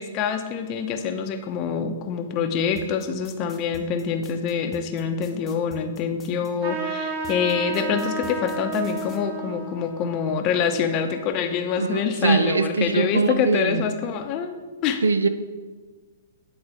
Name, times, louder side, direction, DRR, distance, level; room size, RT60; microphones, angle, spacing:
voice 1, 0.0-15.0, left 7 dB, 35° left, 7 dB, 0.7 m, -26 dB
sound 1, 2.8-6.5 7.2-9.2, left 3 dB, 15° left, 1.0 m, -45 dB
Trumpet, 6.6-11.6, right 3 dB, 50° right, 1.8 m, -33 dB
voice 2, 11.7-13.9 15.0-15.3, right 4 dB, 90° right, 12 dB, 0.5 m, -22 dB
9.7 x 4.0 x 4.9 m, 1.4 s
hypercardioid pair, 130°, 0 cm